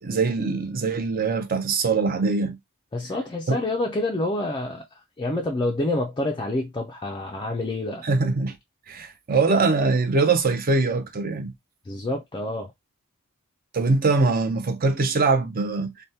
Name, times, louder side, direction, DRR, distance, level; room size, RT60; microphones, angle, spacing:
voice 1, 0.0-2.6 3.5-3.6 8.0-8.6 8.9-11.5 13.7-15.9, right 3 dB, 40° right, 0.5 m, -22 dB
voice 2, 2.9-4.8 5.2-8.0 11.9-12.7, left 2 dB, 20° left, 0.3 m, -27 dB
3.4 x 2.1 x 2.6 m
head